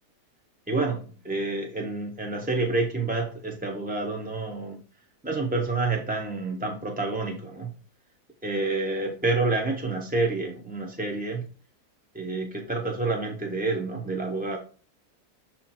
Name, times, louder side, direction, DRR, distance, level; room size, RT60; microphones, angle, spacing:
voice 1, 0.7-4.8 5.2-7.7 8.4-11.4 12.1-14.6, right 3 dB, 10° right, 1 dB, 0.5 m, -28 dB
7.3 x 3.1 x 4.3 m, 0.37 s
omnidirectional pair, 1.7 m